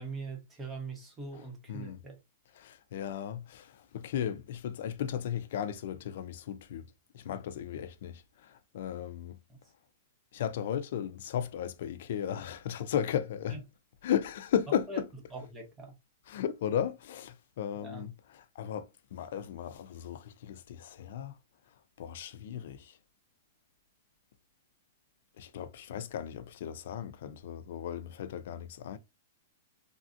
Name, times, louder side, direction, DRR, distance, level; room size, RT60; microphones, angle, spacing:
voice 1, 0.0-2.2 9.5-9.6 13.5-13.6 14.9-15.0 15.3-15.9 17.7-18.0, right 3 dB, 10° right, 0.7 m, -42 dB
voice 2, 1.7-2.0 2.5-6.9 7.1-9.4 10.3-13.6 14.0-15.1 16.3-21.4 22.0-23.0 25.4-29.0, left 9 dB, 60° left, 0.3 m, -35 dB
3.3 x 2.5 x 2.5 m
supercardioid pair, 165°, 0 cm